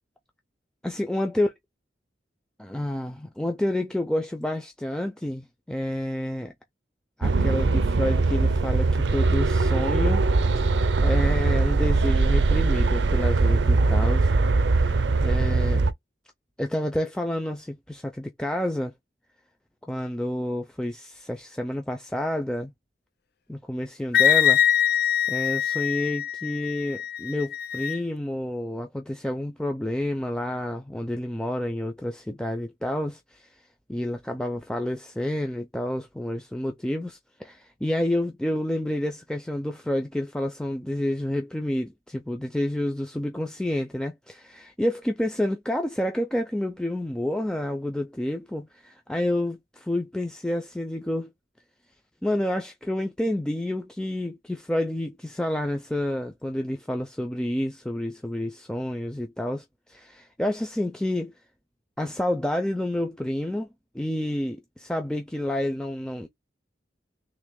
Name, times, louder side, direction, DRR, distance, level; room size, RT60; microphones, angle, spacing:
voice 1, 0.8-1.5 2.6-6.5 7.2-10.3 10.5-14.3 14.6-15.0 15.2-15.8 16.6-18.9 19.9-22.7 23.5-33.5 33.9-51.3 52.2-61.3 62.0-63.7 63.9-66.3, left 1 dB, 5° left, 0.4 m, -29 dB
sound 1, 7.2-15.9, right 3 dB, 70° right, 0.5 m, -21 dB
Wind instrument woodwind instrument, 24.1-28.0, left 9 dB, 60° left, 0.6 m, -23 dB
3.3 x 3.2 x 3.6 m
head